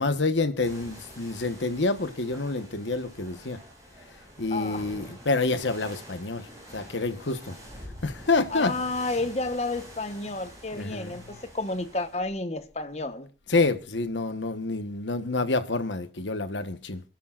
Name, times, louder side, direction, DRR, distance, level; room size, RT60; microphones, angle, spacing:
voice 1, 0.0-3.6 4.4-6.5 6.7-7.6 8.0-8.7 10.7-11.4 13.5-17.0, left 3 dB, 85° left, 1.2 m, -28 dB
sound 1, 0.6-12.2, equal, 20° right, 7.9 m, -47 dB
voice 2, 4.5-4.9 8.5-13.3, left 2 dB, 35° left, 1.1 m, -31 dB
27.5 x 12.0 x 2.5 m
head